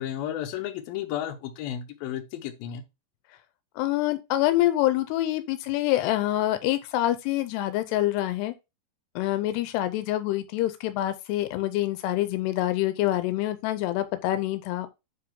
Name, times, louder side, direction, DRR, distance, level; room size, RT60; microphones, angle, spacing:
voice 1, 0.0-2.8, left 10 dB, 70° left, 2.7 m, -33 dB
voice 2, 3.8-8.5 9.2-14.9, left 15 dB, 85° left, 2.7 m, -26 dB
9.7 x 3.7 x 3.6 m
omnidirectional pair, 4.7 m